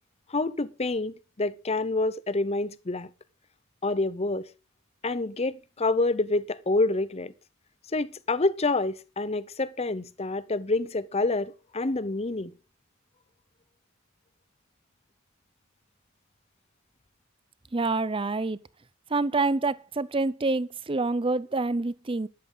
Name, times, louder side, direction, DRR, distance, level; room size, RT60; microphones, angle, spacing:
voice 1, 0.3-3.1 3.8-4.5 5.0-7.3 7.9-12.5, left 2 dB, 30° left, 0.7 m, -27 dB
voice 2, 17.7-18.6 19.1-22.3, right 3 dB, 25° right, 0.5 m, -27 dB
12.5 x 12.0 x 3.9 m
head